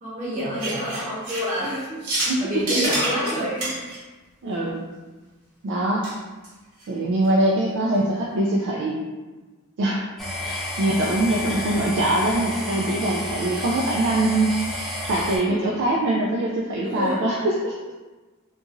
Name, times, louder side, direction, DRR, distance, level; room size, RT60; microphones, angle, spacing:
voice 1, 0.0-2.0 2.4-3.7 11.6-11.7 15.4-15.7 16.7-17.3, equal, 35° right, -8 dB, 1.1 m, -28 dB
sound 1, 0.6-2.4 2.7-4.0 6.0-6.1 6.4-6.5 6.8-6.9 7.2-7.3, right 1 dB, 75° right, 0.9 m, -27 dB
voice 2, 2.3-2.8 4.4-4.8 5.6-6.1 6.9-9.0 9.8-10.1 10.4-17.7, right 1 dB, 55° right, -3 dB, 0.3 m, -23 dB
sound 2, 10.2-15.4, left 1 dB, ahead, 0.5 m, -31 dB
2.8 x 2.5 x 2.4 m, 1.3 s
head